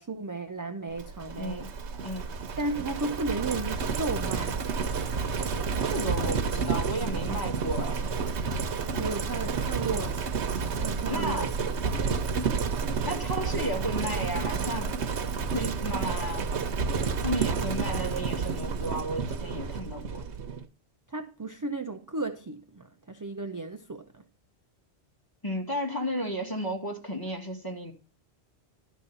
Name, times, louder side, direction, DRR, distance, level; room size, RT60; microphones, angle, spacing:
voice 1, 0.0-1.7 2.6-4.6 9.0-10.2 10.8-11.5 21.1-24.2, right 3 dB, 25° right, 0.4 m, -34 dB
Livestock farm animals working animals, 1.0-20.6, right 5 dB, 85° right, 1.2 m, -30 dB
voice 2, 1.3-1.7 2.0-2.3 5.9-8.0 11.1-11.5 13.0-15.0 15.5-16.5 17.2-20.2 25.4-27.9, equal, 20° left, 2.0 m, -33 dB
12.0 x 4.1 x 6.9 m
omnidirectional pair, 1.1 m